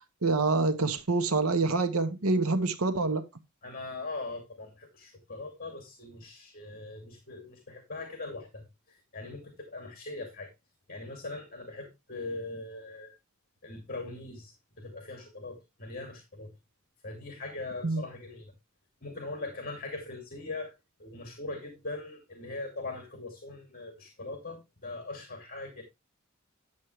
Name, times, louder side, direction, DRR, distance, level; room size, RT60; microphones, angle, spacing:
voice 1, 0.2-3.2 17.8-18.0, right 3 dB, 90° right, 1.1 m, -26 dB
voice 2, 3.6-10.5 10.9-13.2 13.6-16.5 17.0-18.5 19.0-20.7 21.0-25.8, left 2 dB, 45° left, 2.4 m, -41 dB
10.5 x 7.4 x 3.1 m
head